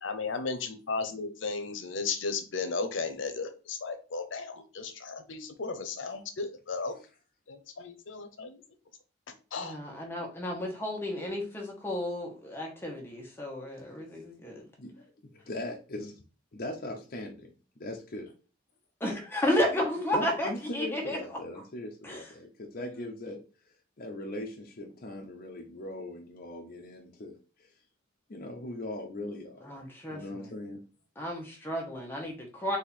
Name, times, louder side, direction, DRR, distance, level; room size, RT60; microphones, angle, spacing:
voice 1, 0.0-7.0 7.5-8.6 9.5-9.7, left 4 dB, 85° left, 8 dB, 0.7 m, -35 dB
voice 2, 9.6-14.6 19.0-21.2 22.0-22.2 22.8-23.1 29.6-30.5 31.2-32.8, left 1 dB, 10° left, -1 dB, 1.2 m, -32 dB
voice 3, 15.3-16.2 16.5-18.3 20.1-23.4 24.0-27.7 28.3-29.8 30.1-30.8, left 1 dB, 50° left, 0 dB, 0.6 m, -40 dB
4.2 x 2.7 x 4.1 m, 0.35 s
head